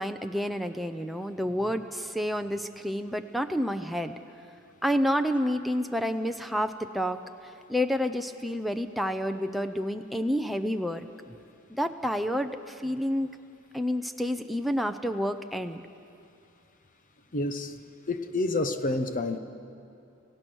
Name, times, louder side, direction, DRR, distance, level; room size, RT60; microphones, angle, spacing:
voice 1, 0.0-4.2 4.8-7.2 7.7-11.1 11.7-13.3 13.7-15.8, equal, ahead, 5 dB, 0.6 m, -29 dB
voice 2, 17.3-17.7 18.1-19.4, left 2 dB, 40° left, 8 dB, 0.8 m, -28 dB
26.0 x 16.5 x 6.3 m, 2.6 s
head